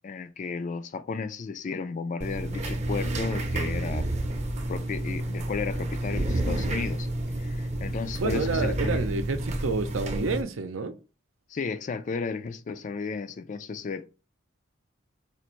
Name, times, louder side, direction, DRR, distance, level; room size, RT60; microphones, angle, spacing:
voice 1, 0.0-4.1 4.7-7.1 7.4-9.0 11.5-14.1, left 4 dB, 40° left, 0.3 m, -33 dB
sound 1, 2.2-10.4, right 1 dB, 35° right, 0.6 m, -30 dB
voice 2, 8.2-10.9, right 3 dB, 90° right, 0.6 m, -29 dB
4.4 x 2.5 x 3.0 m
head